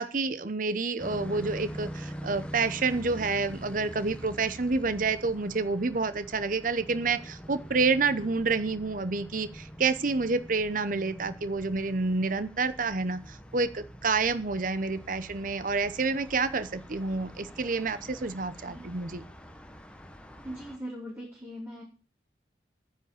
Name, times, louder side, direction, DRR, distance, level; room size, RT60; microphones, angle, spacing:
voice 1, 0.0-19.2, right 4 dB, 50° right, 13 dB, 0.8 m, -29 dB
sound 1, 1.0-20.8, equal, 5° left, 1.2 m, -44 dB
voice 2, 20.4-21.8, equal, 15° right, -6 dB, 4.5 m, -40 dB
10.0 x 8.4 x 8.4 m, 0.36 s
head